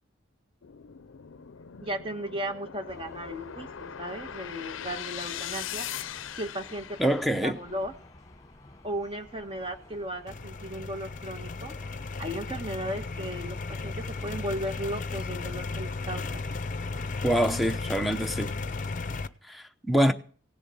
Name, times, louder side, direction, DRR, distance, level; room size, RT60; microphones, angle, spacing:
sound 1, 0.6-7.9, left 9 dB, 85° left, 0.6 m, -40 dB
voice 1, 1.8-5.9 6.4-7.1 7.4-7.9 8.8-11.7 12.2-16.4, right 1 dB, 30° right, 1.5 m, -36 dB
sound 2, 2.9-19.2, left 2 dB, 20° left, 1.5 m, -52 dB
voice 2, 7.0-7.6 17.2-18.6 19.4-20.1, equal, ahead, 0.8 m, -25 dB
sound 3, 10.3-19.3, left 3 dB, 40° left, 0.6 m, -35 dB
17.5 x 7.1 x 8.5 m
head